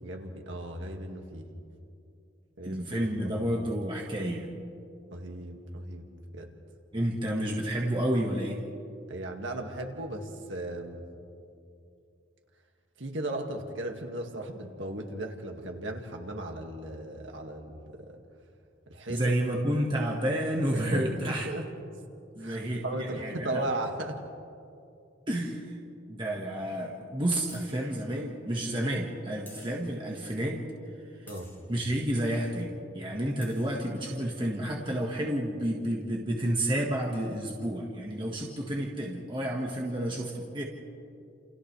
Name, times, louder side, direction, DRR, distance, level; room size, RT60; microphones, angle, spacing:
voice 1, 0.0-1.5 2.6-3.5 5.1-6.1 6.3-6.5 9.1-11.0 13.0-18.2 18.9-19.3 20.7-21.7 22.4-24.2 31.3-31.5, right 1 dB, 80° right, 3 dB, 2.0 m, -36 dB
voice 2, 2.6-4.5 6.9-8.6 19.1-21.5 22.4-23.7 25.3-25.8 26.1-30.6 31.2-31.3 31.7-40.6, right 1 dB, 25° right, -2 dB, 1.6 m, -30 dB
sound 1, 26.2-26.3 27.5-27.9 29.5-30.0 31.3-31.7 33.1-33.2 33.4-33.9, left 2 dB, 10° left, 3.7 m, -53 dB
29.0 x 28.5 x 3.3 m, 2.6 s
head